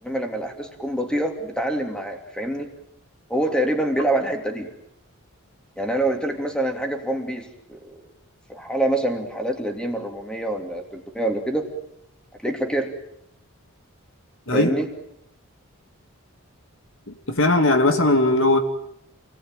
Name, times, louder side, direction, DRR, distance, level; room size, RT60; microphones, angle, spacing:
voice 1, 0.0-2.7 3.3-4.7 5.8-8.0 8.5-11.7 12.4-12.9 14.5-14.9, right 1 dB, 5° left, 3 dB, 3.0 m, -26 dB
voice 2, 14.5-14.8 17.3-18.6, left 2 dB, 60° left, 6 dB, 2.4 m, -18 dB
28.5 x 19.5 x 9.2 m, 0.79 s
head